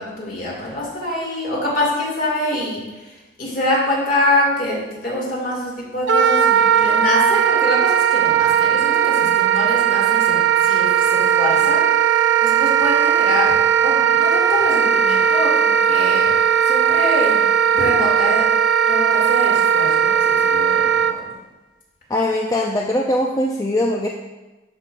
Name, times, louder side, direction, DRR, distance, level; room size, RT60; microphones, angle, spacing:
voice 1, 0.0-3.1 3.4-11.9 12.1-13.5 13.8-16.3 16.6-17.4 17.7-18.5 18.9-21.3, left 1 dB, 45° left, -4 dB, 2.3 m, -25 dB
Wind instrument woodwind instrument, 6.1-21.1, right 8 dB, 70° right, 0.4 m, -17 dB
voice 2, 9.2-9.7 22.1-24.1, left 1 dB, 15° left, 0 dB, 0.3 m, -22 dB
12.0 x 5.5 x 2.4 m, 1.1 s
head